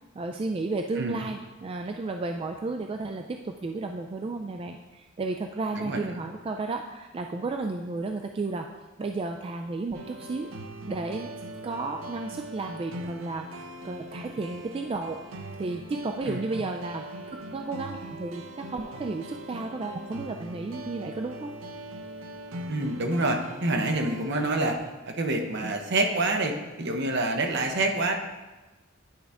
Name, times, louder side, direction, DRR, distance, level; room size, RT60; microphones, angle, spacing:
voice 1, 0.2-8.7 9.0-10.5 10.9-11.3 11.6-13.5 13.8-15.2 15.6-17.1 17.3-21.5 25.6-25.7, right 3 dB, 25° right, 4 dB, 0.3 m, -33 dB
sound 1, 9.9-24.8, right 1 dB, 85° right, 0.6 m, -41 dB
voice 2, 22.7-24.8 25.1-28.1, right 2 dB, 60° right, 4 dB, 0.8 m, -27 dB
10.5 x 4.9 x 3.5 m, 1.1 s
head